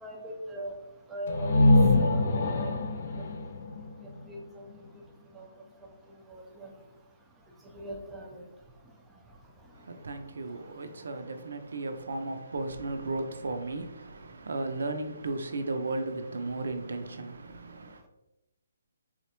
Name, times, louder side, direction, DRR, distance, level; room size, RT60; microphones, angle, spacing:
voice 1, 0.0-0.7 1.1-1.7 2.0-2.7 3.2-3.3 4.3-4.4 5.3-5.5 6.3-6.7 7.7-8.4, right 1 dB, 10° right, 0.5 m, -40 dB
sound 1, 1.3-5.0, left 2 dB, 50° left, 0.4 m, -25 dB
voice 2, 9.7-18.0, right 2 dB, 75° right, 0.5 m, -35 dB
4.1 x 2.1 x 2.9 m
hypercardioid pair, 150°, 0 cm